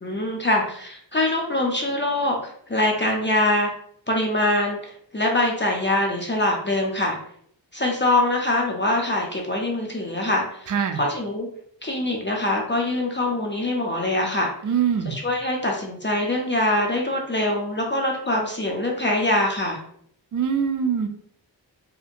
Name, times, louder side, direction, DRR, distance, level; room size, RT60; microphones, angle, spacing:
voice 1, 0.0-3.7 4.1-7.2 7.7-11.5 11.8-14.5 15.1-19.8, left 1 dB, 25° left, 0 dB, 0.5 m, -24 dB
voice 2, 10.7-11.0 14.6-15.2 20.3-21.1, right 7 dB, 45° right, 6 dB, 0.4 m, -23 dB
2.8 x 2.6 x 2.5 m, 0.65 s
wide cardioid pair, 65°, 46 cm